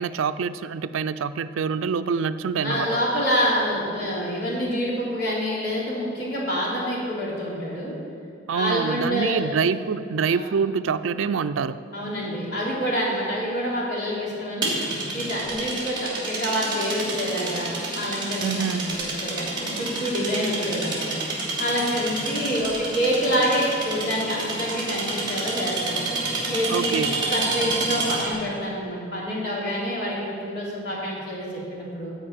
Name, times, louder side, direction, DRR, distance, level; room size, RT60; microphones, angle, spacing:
voice 1, 0.0-3.0 8.5-11.8 18.4-18.9 26.7-27.2, right 6 dB, 85° right, 13 dB, 0.4 m, -26 dB
voice 2, 2.6-7.9 8.5-9.4 10.3-10.5 11.9-14.8 15.1-17.7 18.0-21.1 21.6-26.0 26.5-27.0 27.3-32.1, equal, 55° left, -5 dB, 3.4 m, -27 dB
sound 1, 14.6-28.4, right 2 dB, 25° right, 2.8 m, -29 dB
13.5 x 5.2 x 8.7 m, 2.5 s
head